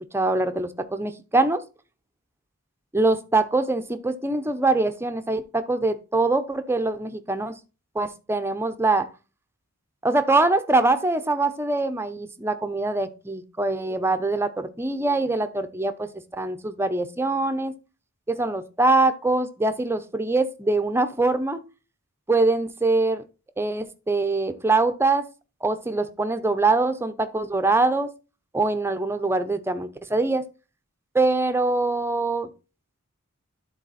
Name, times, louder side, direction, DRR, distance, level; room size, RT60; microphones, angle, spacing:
voice 1, 0.1-1.6 2.9-7.5 7.9-9.1 10.0-17.7 18.3-21.6 22.3-23.2 23.6-25.3 25.6-28.1 28.5-30.4 31.1-32.5, right 2 dB, 10° right, 9 dB, 0.6 m, -23 dB
11.5 x 4.0 x 4.1 m, 0.32 s
head